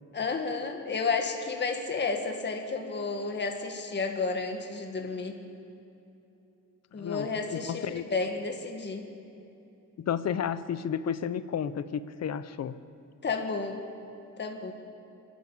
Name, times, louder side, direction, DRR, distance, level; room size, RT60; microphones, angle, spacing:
voice 1, 0.1-5.4 6.9-9.0 13.2-13.9 14.4-14.7, left 4 dB, 35° left, 4 dB, 1.8 m, -31 dB
voice 2, 7.0-8.0 10.0-12.8, left 8 dB, 55° left, 14 dB, 0.8 m, -32 dB
26.5 x 11.5 x 8.5 m, 2.9 s
cardioid pair, 130°, 31 cm